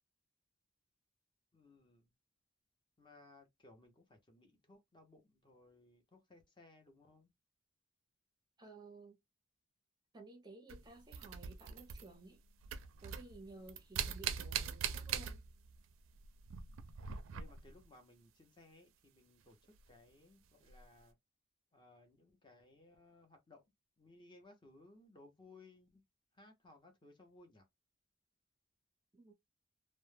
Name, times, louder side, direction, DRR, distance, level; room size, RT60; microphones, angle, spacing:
voice 1, 1.5-2.1 3.0-7.3 14.8-15.2 17.3-19.6 19.9-21.2 21.7-23.6 24.0-26.0 26.3-27.6, left 2 dB, 25° left, 0.6 m, -62 dB
voice 2, 8.6-9.2 10.1-12.4 13.0-15.4 29.1-29.3, right 3 dB, 20° right, 0.5 m, -55 dB
sound 1, 10.7-12.4 12.6-15.8 16.1-17.9 19.8-19.9 20.7-20.8, right 8 dB, 80° right, 0.4 m, -42 dB
2.2 x 2.0 x 3.2 m
head